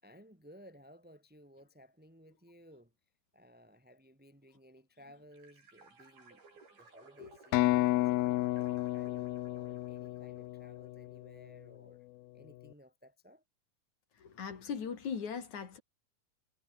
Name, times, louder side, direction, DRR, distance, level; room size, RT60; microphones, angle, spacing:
voice 1, 0.0-2.9 3.3-6.4 6.7-8.0 8.5-12.1 12.3-13.4, equal, ahead, 4.4 m, -58 dB
sound 1, 5.3-11.1, right 4 dB, 75° right, 9.5 m, -60 dB
sound 2, 7.5-11.3, left 18 dB, 80° left, 2.6 m, -32 dB
voice 2, 14.1-15.8, left 6 dB, 50° left, 4.0 m, -39 dB
omnidirectional pair, 4.4 m